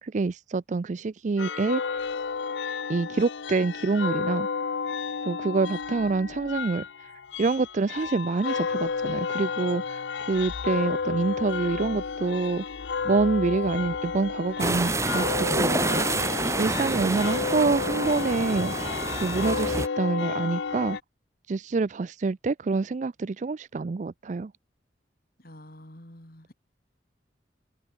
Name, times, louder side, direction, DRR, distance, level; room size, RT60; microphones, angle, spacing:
voice 1, 0.0-2.0 2.9-4.5 5.2-7.1 7.4-12.6 13.0-16.3 16.6-18.9 19.2-21.0 21.5-24.5, right 4 dB, 40° right, 0.4 m, -27 dB
sound 1, 1.4-21.0, left 5 dB, 85° left, 0.6 m, -32 dB
sound 2, 14.6-19.9, right 2 dB, 15° right, 1.8 m, -28 dB
voice 2, 25.4-26.5, left 1 dB, 55° left, 4.2 m, -48 dB
open air
head